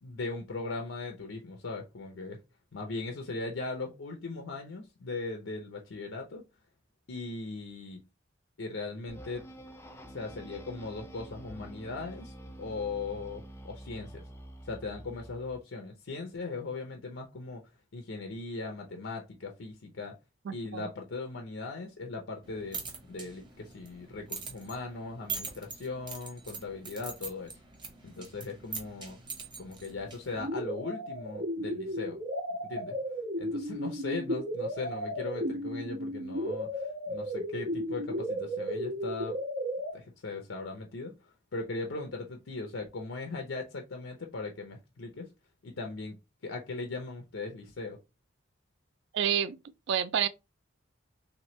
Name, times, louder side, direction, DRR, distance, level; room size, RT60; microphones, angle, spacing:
voice 1, 0.0-2.4 2.7-6.4 7.1-8.0 8.6-9.4 10.1-14.2 14.6-17.6 17.9-20.2 20.5-27.6 28.0-29.2 29.6-32.2 32.6-33.0 33.4-39.4 39.9-45.3 45.6-46.2 46.4-48.0, left 3 dB, 85° left, 0.6 m, -39 dB
sound 1, 9.1-15.6, right 1 dB, 15° left, 0.4 m, -47 dB
voice 2, 20.5-20.9 49.1-49.6 49.9-50.3, right 8 dB, 60° right, 0.3 m, -29 dB
sound 2, 22.4-30.5, right 5 dB, 25° right, 0.9 m, -43 dB
sound 3, 30.4-39.9, equal, 85° right, 1.2 m, -34 dB
3.2 x 3.0 x 3.0 m
head